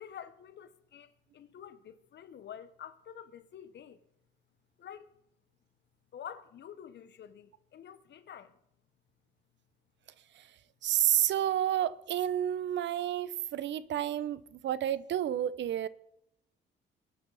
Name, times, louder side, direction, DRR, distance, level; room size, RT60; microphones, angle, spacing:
voice 1, 0.0-4.0 4.8-5.1 6.1-8.6, left 9 dB, 60° left, 1.2 m, -48 dB
voice 2, 10.8-15.9, right 11 dB, 65° right, 0.8 m, -30 dB
22.0 x 9.9 x 4.2 m
cardioid pair, 90°, 20 cm